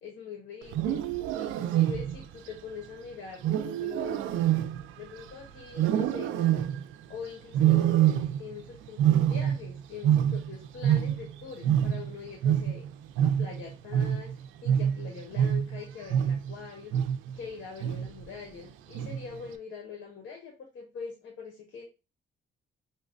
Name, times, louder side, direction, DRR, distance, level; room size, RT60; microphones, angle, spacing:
voice 1, 0.0-4.2 5.0-6.6 7.1-12.9 13.2-14.3 14.6-16.9 17.3-21.8, left 6 dB, 70° left, 2 dB, 0.9 m, -43 dB
Wild animals, 0.6-2.3 3.4-5.3 5.7-6.9 7.5-8.6 8.9-11.4 11.6-16.5 16.9-17.4 17.8-18.2 18.9-19.4, right 10 dB, 80° right, 0.4 m, -26 dB
5.5 x 2.1 x 2.5 m, 0.29 s
cardioid pair, 90°, 20 cm